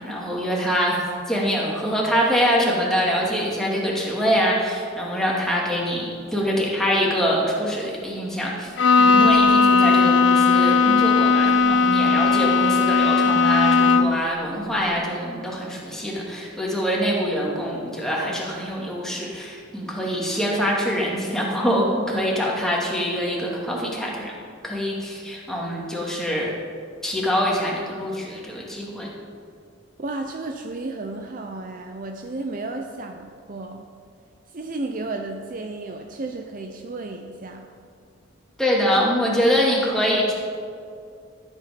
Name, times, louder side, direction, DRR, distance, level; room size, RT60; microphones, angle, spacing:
voice 1, 0.0-8.7 9.0-24.3 24.6-26.5 27.0-29.1 38.6-40.3, equal, 5° left, -4 dB, 2.2 m, -24 dB
Bowed string instrument, 8.8-14.3, left 4 dB, 65° left, 0.6 m, -17 dB
voice 2, 30.0-33.9 34.5-37.7, right 2 dB, 45° right, 4 dB, 0.6 m, -33 dB
14.0 x 8.2 x 5.2 m, 2.3 s
head